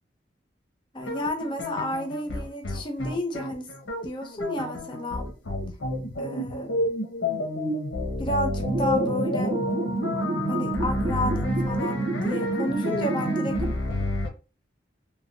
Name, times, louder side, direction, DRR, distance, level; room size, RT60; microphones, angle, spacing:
voice 1, 0.9-3.7 4.0-5.3 6.2-6.7 8.2-9.6 10.5-13.7, equal, 25° left, 0.5 m, -31 dB
sound 1, 1.0-14.3, left 2 dB, 90° left, 0.8 m, -30 dB
sound 2, 8.6-13.7, right 3 dB, 40° right, 0.5 m, -29 dB
3.2 x 2.2 x 2.6 m
head